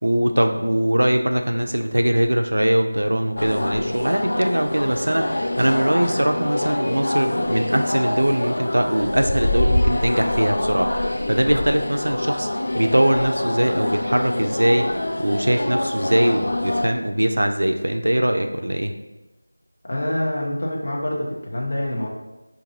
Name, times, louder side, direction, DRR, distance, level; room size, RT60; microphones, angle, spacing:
voice 1, 0.0-14.9 15.2-18.9, right 1 dB, 85° right, 5 dB, 0.4 m, -21 dB
sound 1, 3.4-16.9, left 1 dB, 60° left, 0.3 m, -25 dB
voice 2, 19.8-22.1, left 1 dB, 45° left, -2 dB, 0.8 m, -26 dB
5.1 x 2.6 x 2.6 m, 1.0 s
figure-of-eight pair, 175°, 0 cm